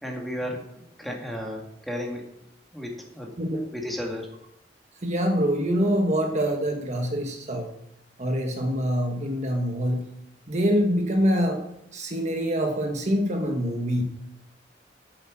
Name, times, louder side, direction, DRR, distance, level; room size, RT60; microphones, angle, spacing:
voice 1, 0.0-2.3 2.7-3.3 3.7-4.3, left 1 dB, ahead, 0 dB, 2.1 m, -34 dB
voice 2, 5.0-7.7 8.2-10.0 10.5-11.6 11.9-14.0, equal, 40° right, 3 dB, 1.4 m, -25 dB
8.9 x 7.8 x 7.5 m, 0.80 s
head